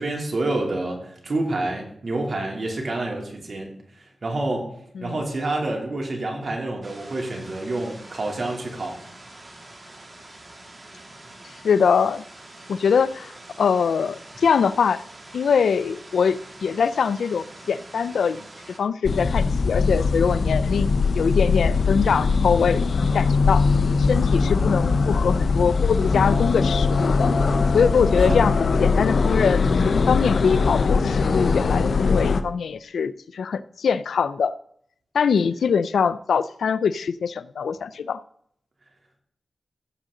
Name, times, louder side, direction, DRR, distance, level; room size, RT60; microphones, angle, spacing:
voice 1, 0.0-3.7 4.2-4.7 5.0-9.0 28.2-28.5, right 2 dB, 55° right, 0 dB, 3.0 m, -28 dB
sound 1, 6.8-18.8, right 2 dB, 40° right, 2.7 m, -45 dB
voice 2, 11.6-12.2 12.7-13.3 13.6-15.0 15.3-18.4 18.8-23.7 24.0-27.3 27.7-34.5 35.1-38.2, left 6 dB, 90° left, 17 dB, 0.4 m, -23 dB
sound 2, 19.0-32.4, left 4 dB, 70° left, 0.7 m, -21 dB
15.0 x 7.6 x 3.8 m, 0.70 s
cardioid pair, 65°, 0 cm